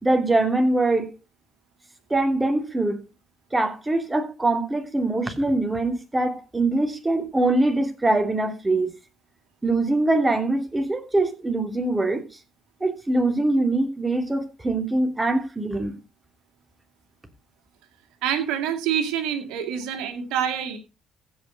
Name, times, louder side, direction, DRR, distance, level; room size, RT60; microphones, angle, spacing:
voice 1, 0.0-1.1 2.1-3.0 3.5-8.9 9.6-12.2 12.8-15.9, right 2 dB, 20° right, 2.9 m, -23 dB
voice 2, 18.2-20.8, right 9 dB, 85° right, 2.1 m, -26 dB
15.5 x 5.6 x 5.0 m
supercardioid pair, 70°, 0 cm